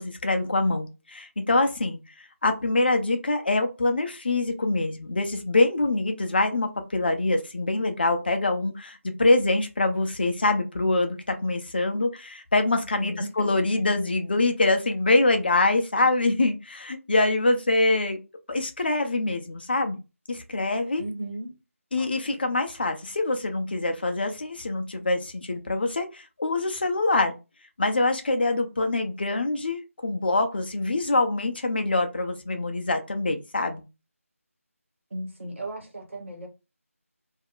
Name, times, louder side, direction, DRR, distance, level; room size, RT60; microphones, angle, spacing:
voice 1, 0.0-2.0 2.4-18.2 18.5-20.0 20.3-21.0 21.9-27.4 27.8-33.8, left 2 dB, 40° left, 0.5 m, -24 dB
voice 2, 13.0-14.0 21.0-21.5 22.0-22.5 35.1-36.5, right 1 dB, 55° right, 1.1 m, -36 dB
2.4 x 2.1 x 3.6 m
figure-of-eight pair, 165°, 8 cm